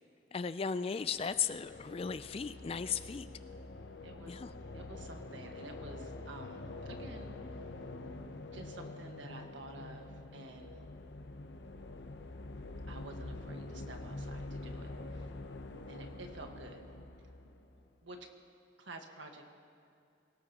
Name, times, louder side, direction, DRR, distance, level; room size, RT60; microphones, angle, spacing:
voice 1, 0.3-3.3 4.3-4.5, left 6 dB, 30° left, 13 dB, 0.3 m, -36 dB
sound 1, 1.1-18.0, left 2 dB, 65° left, 0.8 m, -46 dB
voice 2, 4.0-4.3 4.7-7.6 8.5-10.8 12.9-15.4 15.9-16.8 17.2-17.6 18.0-18.2 18.8-19.5, right 2 dB, 75° right, 3 dB, 1.5 m, -50 dB
25.0 x 17.5 x 2.9 m, 2.5 s
head